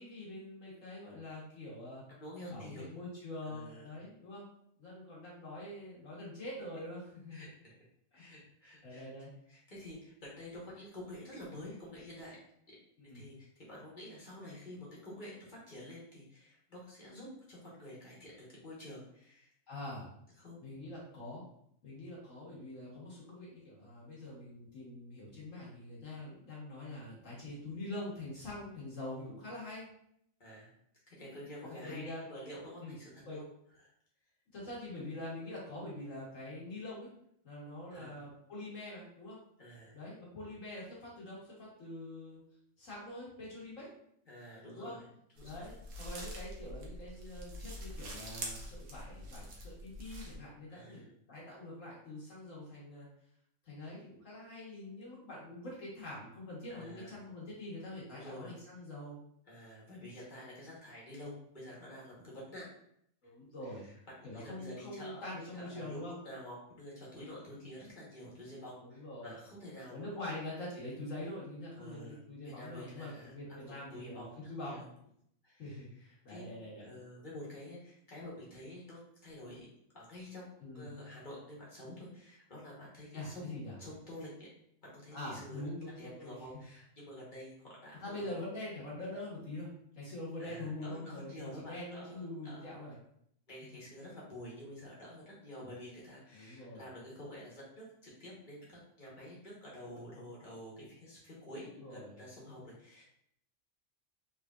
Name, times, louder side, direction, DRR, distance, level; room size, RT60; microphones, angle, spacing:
voice 1, 0.0-2.0 2.5-4.5 4.8-7.4 8.1-8.2 8.8-9.3 13.0-13.2 19.7-20.1 20.6-21.5 21.8-29.9 31.6-32.2 32.8-32.9 33.2-33.4 34.5-37.1 37.4-39.4 39.9-42.4 42.8-43.9 44.7-45.0 45.4-53.1 53.6-59.2 63.2-63.8 64.2-66.2 68.8-69.4 69.9-74.8 75.6-76.9 80.6-80.9 83.1-83.7 85.1-86.4 88.0-89.7 90.0-93.0 93.7-93.8 96.3-96.8 101.7-102.1, left 1 dB, 65° left, -6 dB, 1.5 m, -44 dB
voice 2, 2.1-2.9 3.4-4.0 7.3-7.7 8.1-9.1 9.5-12.4 12.7-12.8 13.1-19.5 20.4-20.6 30.4-30.7 31.1-33.5 37.9-38.3 39.6-40.0 44.3-45.1 45.4-45.7 50.7-51.1 56.7-57.1 58.1-58.5 59.5-62.7 63.6-70.4 71.7-73.3 73.7-74.9 75.4-76.5 76.8-79.7 79.9-80.5 80.7-83.5 83.8-84.5 84.8-85.6 86.0-88.3 90.4-92.8 93.5-103.0, left 1 dB, 35° left, -5 dB, 1.2 m, -49 dB
sound 1, 45.4-50.4, right 1 dB, 70° right, 1.1 m, -45 dB
3.6 x 3.2 x 2.4 m, 0.70 s
omnidirectional pair, 1.4 m